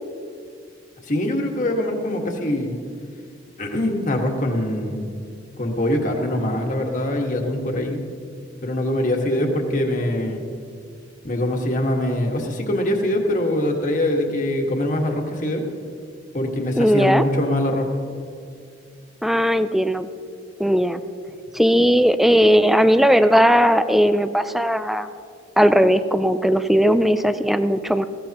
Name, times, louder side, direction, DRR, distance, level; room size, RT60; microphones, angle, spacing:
voice 1, 1.0-2.8 3.6-5.1 5.6-8.0 8.6-10.4 11.2-15.6 16.3-17.9, left 1 dB, 45° left, 1 dB, 1.7 m, -23 dB
voice 2, 16.8-17.2 19.2-20.1 20.6-21.0 21.5-25.1 25.6-28.0, equal, ahead, 11 dB, 0.4 m, -17 dB
20.0 x 16.0 x 3.0 m, 2.3 s
head